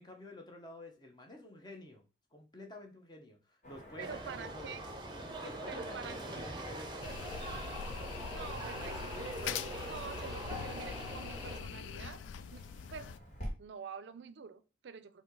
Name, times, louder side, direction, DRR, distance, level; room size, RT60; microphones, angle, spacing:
voice 1, 0.0-2.0 2.3-4.8 5.4-7.6, left 2 dB, 25° left, 3 dB, 0.9 m, -50 dB
Car passing by / Traffic noise roadway noise, 3.6-13.5, equal, 40° left, 1.8 m, -51 dB
sound 1, 4.0-11.6, right 1 dB, 25° right, 0.6 m, -43 dB
voice 2, 4.0-4.8 5.4-6.4 8.3-12.2 12.5-12.6 12.9-13.1 13.6-15.2, right 6 dB, 75° right, 12 dB, 0.4 m, -47 dB
sound 2, 7.0-13.2, left 7 dB, 90° left, 0.3 m, -43 dB
4.2 x 2.8 x 4.6 m, 0.32 s
head